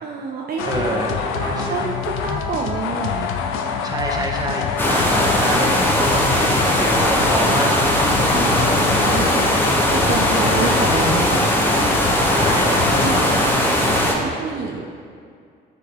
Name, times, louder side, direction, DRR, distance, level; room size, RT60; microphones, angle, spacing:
voice 1, 0.0-3.3 8.3-11.5 12.7-13.2 14.0-14.9, right 4 dB, 50° right, 0 dB, 0.6 m, -28 dB
sound 1, 0.6-13.5, left 6 dB, 75° left, 0.5 m, -26 dB
voice 2, 0.6-1.9 3.8-7.8 8.1-8.7 12.3-13.9, right 1 dB, 20° right, 0 dB, 1.1 m, -27 dB
sound 2, 4.8-14.1, left 1 dB, 10° left, 1.0 m, -19 dB
9.4 x 3.8 x 3.0 m, 2.2 s
supercardioid pair, 70°, 21 cm